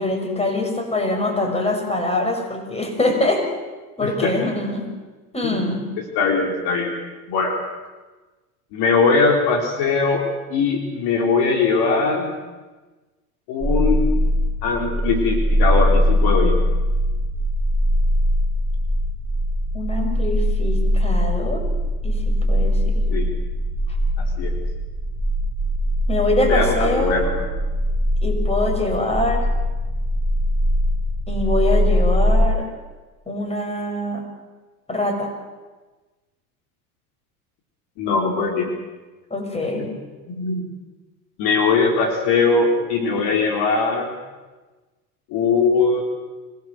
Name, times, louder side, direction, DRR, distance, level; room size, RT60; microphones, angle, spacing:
voice 1, 0.0-3.4 4.0-4.9 5.3-5.8 19.7-21.6 22.0-23.0 26.1-27.4 28.2-29.5 31.3-32.7 33.3-34.2 34.9-35.3 39.3-39.9, left 2 dB, 15° left, 3 dB, 6.1 m, -24 dB
voice 2, 4.0-4.5 5.4-5.7 6.1-6.9 7.3-7.5 8.7-12.3 13.5-14.0 14.6-16.5 23.1-23.3 24.2-24.5 26.5-27.5 38.0-38.7 40.4-40.6 41.4-44.1 45.3-46.0, left 4 dB, 55° left, 3 dB, 4.1 m, -20 dB
sound 1, 13.6-32.5, equal, 15° right, 4.6 m, -21 dB
26.0 x 17.5 x 7.9 m, 1.2 s
hypercardioid pair, 90°, 46 cm